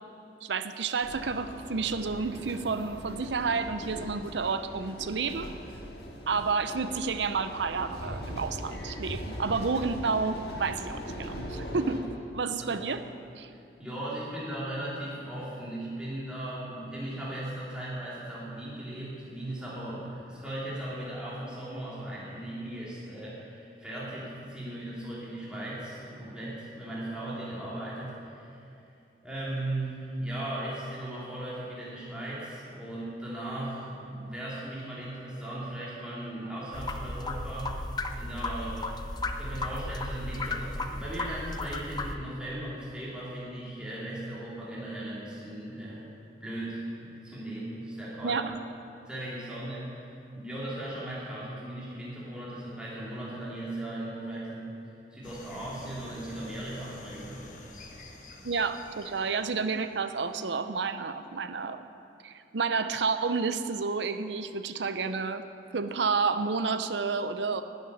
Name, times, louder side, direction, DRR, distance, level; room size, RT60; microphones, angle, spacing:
voice 1, 0.4-5.5 6.3-12.0 12.3-13.0 13.4-13.5 48.2-48.6 58.4-61.8 62.2-65.4 65.7-67.6, right 4 dB, 85° right, 10 dB, 0.7 m, -30 dB
sound 1, 1.0-12.0, equal, 65° left, 1.8 m, -40 dB
voice 2, 13.8-28.8 29.2-37.8 38.2-39.1 39.4-46.1 46.4-48.5 49.1-50.1 50.3-57.6, right 1 dB, 5° right, -8 dB, 3.1 m, -37 dB
sound 2, 36.7-42.1, left 2 dB, 25° left, 0.6 m, -35 dB
sound 3, 55.2-60.3, left 2 dB, 45° left, 1.3 m, -49 dB
11.5 x 7.6 x 9.8 m, 2.6 s
head